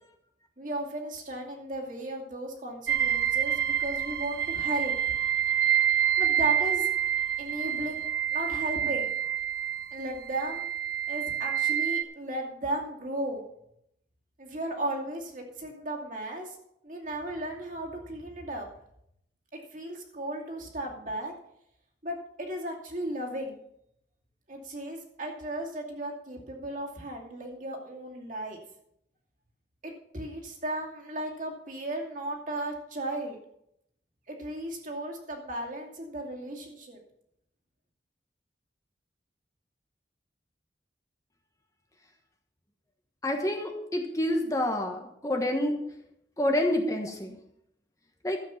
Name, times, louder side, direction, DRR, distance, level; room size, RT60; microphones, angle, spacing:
voice 1, 0.6-5.3 6.2-6.9 7.4-8.1 8.3-9.1 9.9-10.6 11.1-13.4 14.4-16.6 16.8-18.7 19.5-21.3 22.0-23.6 24.5-28.6 29.8-33.4 34.3-37.0, right 1 dB, 45° right, -1 dB, 2.5 m, -35 dB
sound 1, 2.9-12.0, right 10 dB, 70° right, 0.9 m, -27 dB
voice 2, 43.2-45.8 46.4-47.4 48.2-48.4, left 1 dB, 20° left, 3 dB, 1.2 m, -28 dB
12.5 x 8.2 x 5.7 m, 0.76 s
head